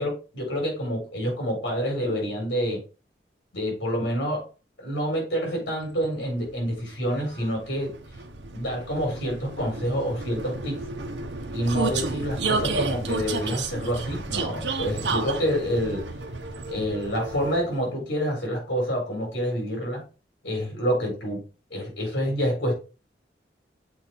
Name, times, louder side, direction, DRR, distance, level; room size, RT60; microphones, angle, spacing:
voice 1, 0.0-2.8 3.5-4.4 4.8-7.9 8.5-10.8 11.5-16.0 16.7-20.0 20.4-21.4 21.7-22.7, equal, 80° left, 0 dB, 4.2 m, -27 dB
Vehicle, 6.0-17.9, right 3 dB, 75° right, 1.0 m, -32 dB
7.1 x 4.5 x 3.7 m, 0.33 s
head